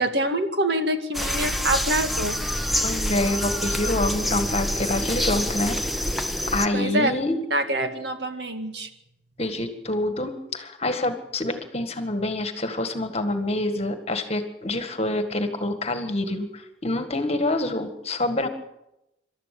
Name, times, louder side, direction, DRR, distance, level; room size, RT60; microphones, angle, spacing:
voice 1, 0.0-2.4 6.7-7.1 7.5-8.9, right 1 dB, 60° right, 7 dB, 2.1 m, -25 dB
sound 1, 1.1-6.7, left 1 dB, ahead, 0.9 m, -26 dB
voice 2, 2.8-5.8 6.5-7.4 9.4-18.5, left 2 dB, 35° left, 8 dB, 1.8 m, -26 dB
26.5 x 13.0 x 8.5 m, 0.89 s
head